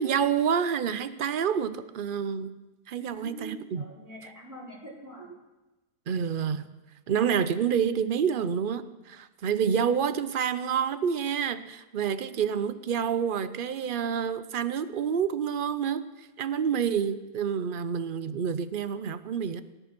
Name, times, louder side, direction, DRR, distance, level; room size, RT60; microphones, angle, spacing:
voice 1, 0.0-2.5 2.9-3.9 6.1-6.7 7.1-19.6, right 7 dB, 55° right, 13 dB, 0.6 m, -28 dB
voice 2, 3.0-5.3, equal, 10° right, -7 dB, 3.9 m, -44 dB
18.5 x 10.0 x 6.0 m, 1.1 s
omnidirectional pair, 1.6 m